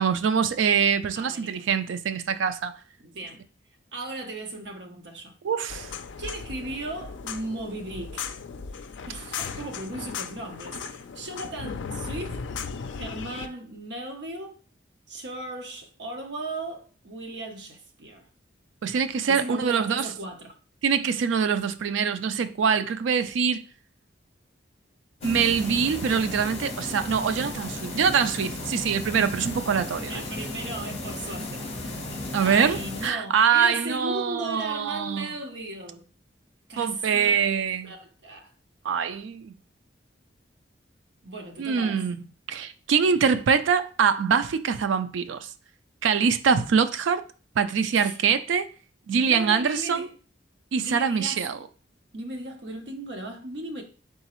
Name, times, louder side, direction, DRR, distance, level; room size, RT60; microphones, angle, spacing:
voice 1, 0.0-2.7 5.4-5.9 18.8-20.1 20.8-23.6 25.2-30.2 32.3-35.3 36.8-37.9 38.8-39.5 41.6-42.2 42.5-45.5 46.0-47.2 47.6-48.7 49.1-50.1 50.7-51.6, right 6 dB, 85° right, 0.4 m, -24 dB
voice 2, 1.2-1.6 3.0-3.4 3.9-5.3 6.2-8.3 8.7-12.4 12.9-14.6 15.1-18.3 19.3-20.6 30.1-31.6 32.4-36.0 36.7-37.5 37.8-38.5 41.2-42.0 47.9-48.2 49.3-50.1 50.8-51.5 52.1-53.8, right 2 dB, 65° right, 0.8 m, -37 dB
sound 1, 5.7-13.5, left 6 dB, 75° left, 0.4 m, -36 dB
sound 2, 25.2-33.1, left 2 dB, 35° left, 0.8 m, -35 dB
4.0 x 3.6 x 2.9 m
head